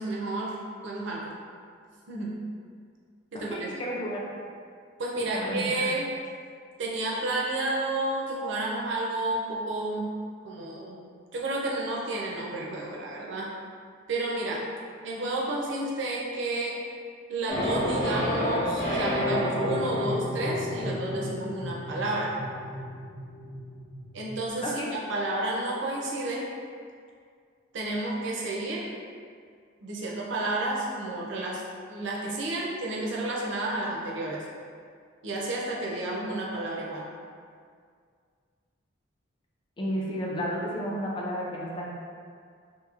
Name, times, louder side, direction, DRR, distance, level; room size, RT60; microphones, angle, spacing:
voice 1, 0.0-1.3 2.1-2.4 3.3-3.7 5.0-6.1 6.8-10.1 10.4-11.0 11.3-13.5 14.1-14.7 15.0-16.8 17.3-22.3 24.1-26.5 27.7-28.9 29.8-31.6 31.9-34.5 35.2-37.1, right 2 dB, 65° right, -3 dB, 0.5 m, -31 dB
voice 2, 3.3-4.3 5.2-6.0 24.6-24.9 39.8-41.9, equal, 25° left, -3 dB, 0.3 m, -32 dB
sound 1, 17.5-24.5, left 1 dB, 65° left, 0.8 m, -30 dB
2.9 x 2.6 x 2.4 m, 2.2 s
head